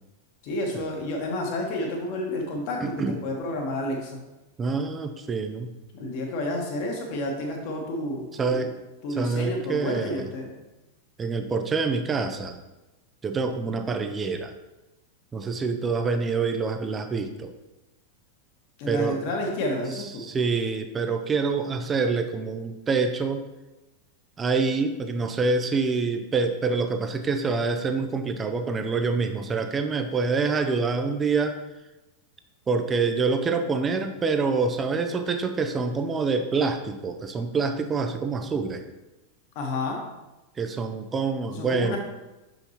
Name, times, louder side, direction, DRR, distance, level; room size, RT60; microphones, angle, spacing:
voice 1, 0.4-4.2 5.9-8.6 9.0-10.5 18.8-20.2 39.5-40.0 41.5-42.0, left 1 dB, 45° left, 1 dB, 1.4 m, -30 dB
voice 2, 2.8-3.2 4.6-5.7 8.3-8.7 9.1-10.3 11.2-12.6 13.2-14.5 15.3-17.5 18.9-19.2 19.9-23.4 24.4-31.6 32.7-38.8 40.6-42.0, right 4 dB, 20° right, 7 dB, 0.6 m, -26 dB
6.7 x 5.7 x 3.0 m, 1.0 s
figure-of-eight pair, 90°, 0 cm